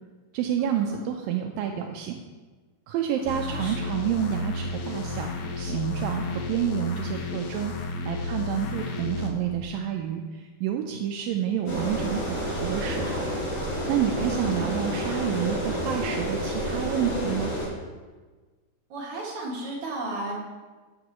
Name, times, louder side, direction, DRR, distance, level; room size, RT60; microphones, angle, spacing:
voice 1, 0.3-2.2 2.9-7.7 8.1-13.3 13.9-17.5, right 9 dB, 85° right, 3 dB, 2.0 m, -29 dB
sound 1, 3.3-9.3, left 3 dB, 80° left, 1.6 m, -32 dB
voice 2, 3.5-3.8 14.2-14.7 18.9-20.4, right 2 dB, 50° right, -4 dB, 3.1 m, -34 dB
sound 2, 11.7-17.7, equal, 50° left, 5.2 m, -29 dB
13.5 x 8.8 x 3.0 m, 1.3 s
omnidirectional pair, 4.7 m